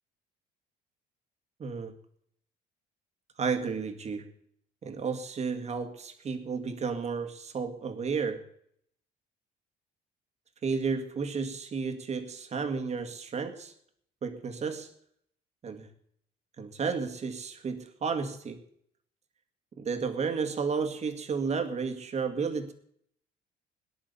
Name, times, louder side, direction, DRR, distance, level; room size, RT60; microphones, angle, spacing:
voice 1, 1.6-1.9 3.4-4.3 4.8-8.4 10.6-13.7 14.2-14.9 15.6-15.9 16.6-18.6 19.8-22.7, right 5 dB, 40° right, 6 dB, 2.1 m, -32 dB
18.5 x 10.0 x 7.0 m, 0.68 s
cardioid pair, 110°, 17 cm